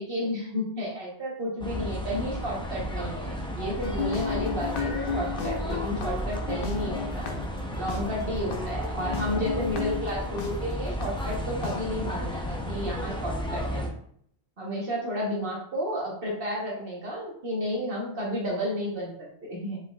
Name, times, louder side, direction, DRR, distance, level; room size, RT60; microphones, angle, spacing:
voice 1, 0.0-7.3 7.7-13.9 14.6-19.8, equal, 55° right, -4 dB, 1.3 m, -32 dB
sound 1, 1.6-13.9, equal, 10° left, 0.3 m, -33 dB
sound 2, 3.8-10.5 11.0-11.1 11.6-11.8, left 5 dB, 60° left, 0.7 m, -34 dB
4.5 x 3.9 x 2.4 m, 0.65 s
omnidirectional pair, 1.1 m